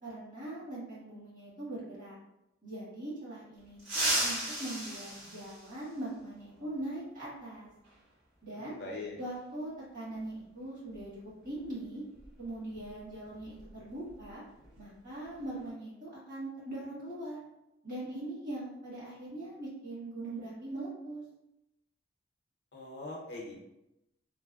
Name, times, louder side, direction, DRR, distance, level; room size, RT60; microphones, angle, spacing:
voice 1, 0.0-2.2 2.6-7.7 8.4-8.8 9.2-12.0 12.4-14.4 14.8-17.4 17.8-21.2, right 1 dB, 45° right, -9 dB, 1.5 m, -41 dB
sound 1, 3.8-6.2 7.9-8.0 9.2-9.3 10.9-11.1 11.4-11.6 12.1-14.3 14.6-14.8 15.2-15.7, right 1 dB, 80° right, 1.5 m, -35 dB
voice 2, 8.5-9.2 22.7-23.6, left 2 dB, 55° left, -2 dB, 0.6 m, -42 dB
3.2 x 2.0 x 2.3 m, 0.88 s
head